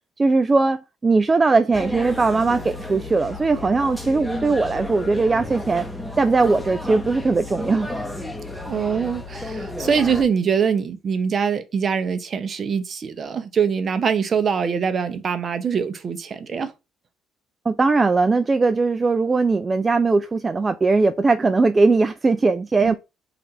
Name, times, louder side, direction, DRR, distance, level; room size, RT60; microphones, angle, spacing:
voice 1, 0.2-5.9 6.2-7.9 17.7-23.0, right 3 dB, 25° right, 0.4 m, -19 dB
sound 1, 1.7-10.2, left 1 dB, 5° left, 0.9 m, -32 dB
voice 2, 8.7-16.7 22.8-23.0, right 6 dB, 45° right, 0.8 m, -23 dB
4.1 x 2.6 x 4.2 m
cardioid pair, 90°, 0 cm